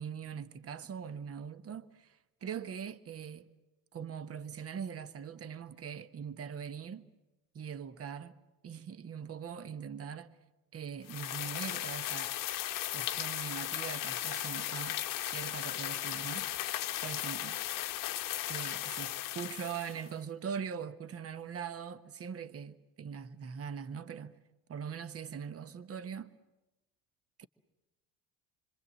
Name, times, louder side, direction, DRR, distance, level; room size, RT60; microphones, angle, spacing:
voice 1, 0.0-3.5 3.9-7.1 7.5-8.4 8.6-10.3 10.7-12.3 12.9-16.5 17.0-17.6 18.5-24.3 24.7-26.3 27.4-27.5, right 7 dB, 30° right, 1.3 m, -42 dB
sound 1, 11.1-20.1, left 13 dB, 45° left, 1.1 m, -36 dB
27.0 x 25.5 x 7.6 m
figure-of-eight pair, 60°, 47 cm